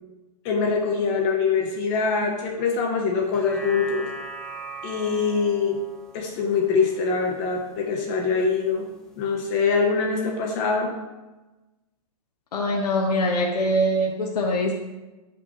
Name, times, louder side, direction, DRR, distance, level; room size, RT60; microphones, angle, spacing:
voice 1, 0.4-4.1 4.8-5.8 6.1-8.9 9.2-10.9, left 5 dB, 30° left, 1 dB, 1.0 m, -24 dB
sound 1, 3.2-7.8 8.2-8.3, right 1 dB, 5° left, 0.5 m, -40 dB
voice 2, 12.5-14.7, equal, 85° left, 0 dB, 1.2 m, -23 dB
15.0 x 5.4 x 3.2 m, 1.1 s
hypercardioid pair, 160°, 20 cm